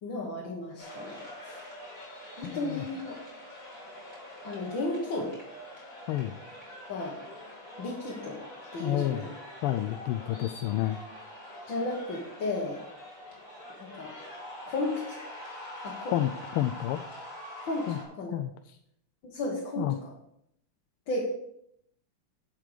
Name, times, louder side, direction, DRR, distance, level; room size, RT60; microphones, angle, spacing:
voice 1, 0.0-1.6 2.4-3.2 4.4-5.3 6.9-7.2 7.8-8.4 8.7-9.3 11.7-12.8 13.8-14.1 14.7-15.2 15.8-16.1 17.6-18.3 19.2-20.1 21.1-21.3, left 2 dB, 60° left, -3 dB, 2.2 m, -34 dB
sound 1, 0.8-18.0, left 1 dB, 35° left, 4.1 m, -45 dB
voice 2, 2.4-2.8 6.1-6.3 8.8-9.2 9.6-11.0 16.1-17.0 17.9-18.0 18.3-18.5 19.8-19.9, left 13 dB, 85° left, 8 dB, 1.5 m, -29 dB
11.0 x 6.6 x 5.0 m, 0.77 s
omnidirectional pair, 2.4 m